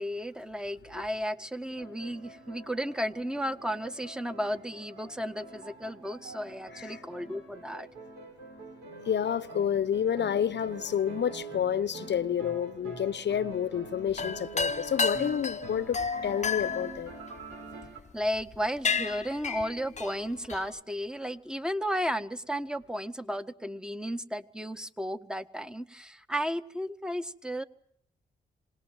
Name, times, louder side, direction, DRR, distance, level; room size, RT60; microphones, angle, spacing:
voice 1, 0.0-7.9 18.1-27.6, equal, 5° right, 1.5 m, -34 dB
sound 1, 1.8-18.0, right 2 dB, 80° right, 5.9 m, -45 dB
voice 2, 6.7-7.0 9.0-17.1, left 8 dB, 55° left, 1.0 m, -29 dB
sound 2, 14.1-17.9 18.4-18.6 18.8-20.8, left 5 dB, 35° left, 0.9 m, -32 dB
26.0 x 19.5 x 9.1 m
hypercardioid pair, 45°, 21 cm